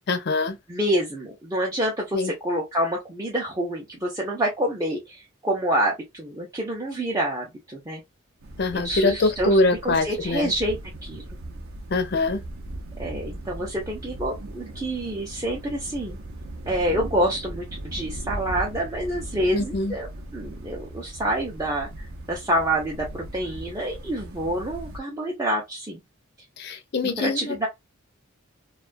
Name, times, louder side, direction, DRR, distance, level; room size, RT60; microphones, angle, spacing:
voice 1, 0.1-0.6 2.1-2.3 8.6-10.5 11.9-12.4 19.5-19.9 26.6-27.6, left 2 dB, 50° left, 0.4 m, -23 dB
voice 2, 0.7-8.0 8.7-11.2 13.0-16.2 16.7-26.0 27.2-27.7, right 1 dB, 15° right, 0.5 m, -27 dB
sound 1, 8.4-25.0, right 1 dB, 70° right, 0.6 m, -38 dB
2.3 x 2.2 x 2.4 m
head